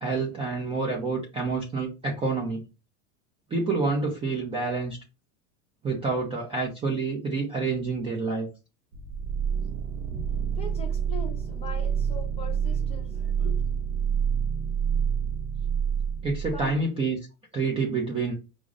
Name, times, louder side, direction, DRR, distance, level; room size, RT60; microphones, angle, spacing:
voice 1, 0.0-2.7 3.5-5.0 5.8-8.5 10.1-10.2 16.2-17.2 17.5-18.3, right 3 dB, 15° right, 0.4 m, -28 dB
sound 1, 8.9-16.8, right 7 dB, 80° right, 0.6 m, -28 dB
voice 2, 10.6-13.7 16.5-16.8, left 3 dB, 15° left, 0.7 m, -41 dB
4.7 x 2.0 x 2.4 m
supercardioid pair, 140°, 39 cm